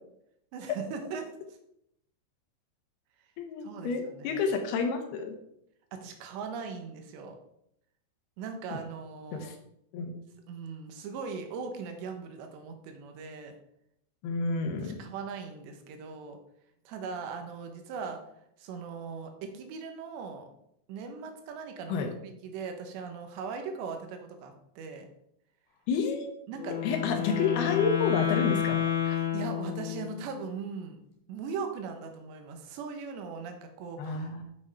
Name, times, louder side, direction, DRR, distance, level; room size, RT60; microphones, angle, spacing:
voice 1, 0.5-1.3 3.6-4.4 5.9-7.4 8.4-9.5 10.5-13.5 14.8-16.4 16.9-18.2 18.6-20.5 20.9-22.0 22.2-25.1 26.5-26.8 27.3-27.8 29.1-31.0 31.3-34.3, right 5 dB, 75° right, 5 dB, 3.1 m, -39 dB
voice 2, 3.4-5.3 9.3-9.6 9.9-10.1 14.2-15.0 21.9-22.1 25.9-26.3 26.8-28.8 29.0-29.2 34.0-34.4, left 5 dB, 70° left, 4 dB, 2.7 m, -30 dB
Wind instrument woodwind instrument, 26.5-30.2, left 10 dB, 50° left, 4.0 m, -30 dB
8.8 x 6.2 x 4.8 m, 0.76 s
omnidirectional pair, 5.4 m